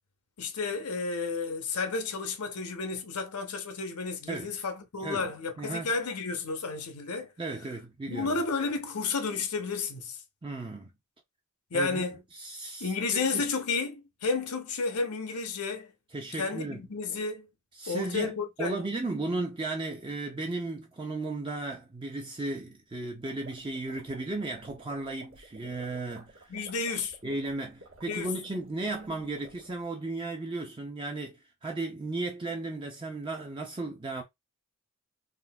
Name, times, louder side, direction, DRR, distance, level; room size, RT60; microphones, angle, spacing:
voice 1, 0.4-7.3 8.1-10.2 11.7-12.2 12.8-15.9 16.3-17.5 17.9-18.8 26.5-27.2 28.1-28.3, left 4 dB, 80° left, 0.8 m, -32 dB
voice 2, 5.0-5.3 5.6-5.9 7.4-8.4 10.4-10.9 11.7-12.0 12.3-13.5 16.1-16.8 17.8-26.5 27.2-34.2, right 2 dB, 20° right, 0.5 m, -35 dB
sound 1, 23.0-29.9, right 2 dB, 60° right, 1.1 m, -53 dB
3.7 x 2.6 x 2.3 m
head